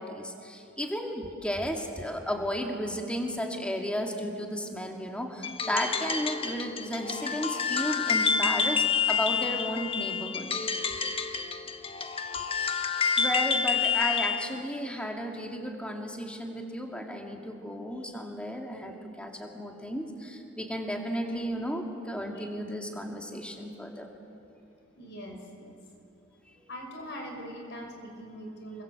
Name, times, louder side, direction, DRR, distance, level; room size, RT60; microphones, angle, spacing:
voice 1, 0.0-10.5 12.4-12.5 13.2-24.1 26.6-26.7, equal, 5° left, 2 dB, 2.3 m, -34 dB
sound 1, 5.4-14.5, left 6 dB, 30° left, 1.1 m, -28 dB
voice 2, 25.0-25.8 26.7-28.8, equal, 60° left, 3 dB, 5.3 m, -42 dB
28.0 x 23.5 x 7.9 m, 2.7 s
head